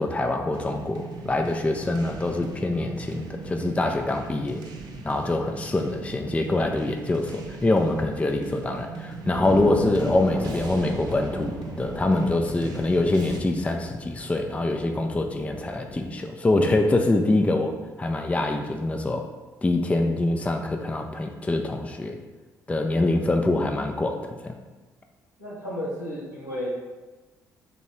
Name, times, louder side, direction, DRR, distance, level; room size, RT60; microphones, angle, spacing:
voice 1, 0.0-4.6 5.0-19.3 19.6-22.2 22.7-24.6, left 2 dB, 15° left, 4 dB, 0.4 m, -25 dB
sound 1, 0.5-13.4, right 3 dB, 50° right, 0.6 m, -39 dB
sound 2, 9.3-16.1, equal, 20° right, 0.9 m, -36 dB
voice 2, 25.4-26.7, left 1 dB, 90° left, -8 dB, 1.3 m, -33 dB
3.6 x 3.0 x 4.3 m, 1.2 s
figure-of-eight pair, 45°, 9 cm